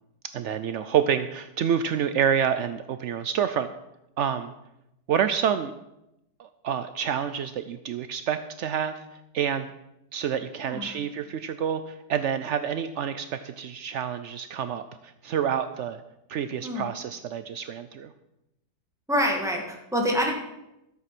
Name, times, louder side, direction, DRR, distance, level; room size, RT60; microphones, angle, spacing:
voice 1, 0.3-3.7 4.2-4.5 5.1-5.7 6.4-8.9 9.3-9.7 10.1-16.0 16.3-18.1, right 8 dB, 80° right, 11 dB, 0.6 m, -28 dB
voice 2, 10.6-11.0 16.6-16.9 19.1-20.3, equal, ahead, 0 dB, 1.9 m, -26 dB
13.0 x 8.2 x 6.0 m, 0.89 s
omnidirectional pair, 1.8 m